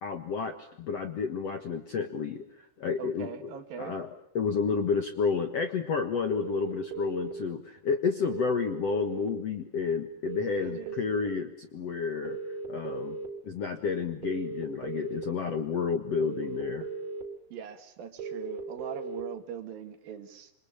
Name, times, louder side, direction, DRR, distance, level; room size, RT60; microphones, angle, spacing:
voice 1, 0.0-13.2 13.4-16.9, left 5 dB, 55° left, 8 dB, 1.8 m, -31 dB
voice 2, 3.0-4.0 10.6-10.9 17.5-20.5, right 7 dB, 65° right, 8 dB, 3.5 m, -41 dB
sound 1, 6.3-7.3 8.3-9.3 10.3-11.3 12.2-13.3 14.2-15.2 16.2-17.2 18.2-19.2, right 4 dB, 40° right, 4.3 m, -37 dB
27.5 x 26.0 x 8.5 m, 0.73 s
omnidirectional pair, 4.7 m